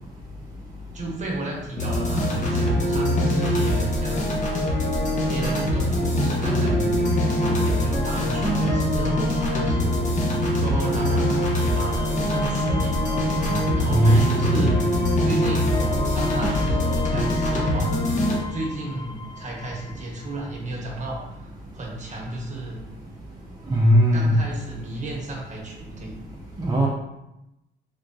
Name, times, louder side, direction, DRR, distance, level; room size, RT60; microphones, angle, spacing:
voice 1, 0.9-4.3 5.3-10.1 10.6-13.3 13.7-14.8 15.2-18.0 18.5-21.5 21.7-22.8 24.1-26.1, right 2 dB, 35° right, -2 dB, 1.2 m, -33 dB
sound 1, 1.8-18.4, left 1 dB, 40° left, 1.0 m, -23 dB
sound 2, 7.0-20.5, left 4 dB, 20° left, 0.4 m, -37 dB
voice 2, 13.9-14.7 23.7-24.4 26.6-26.9, equal, 20° right, -5 dB, 0.6 m, -18 dB
3.8 x 3.3 x 2.6 m, 0.92 s
cardioid pair, 90°, 20 cm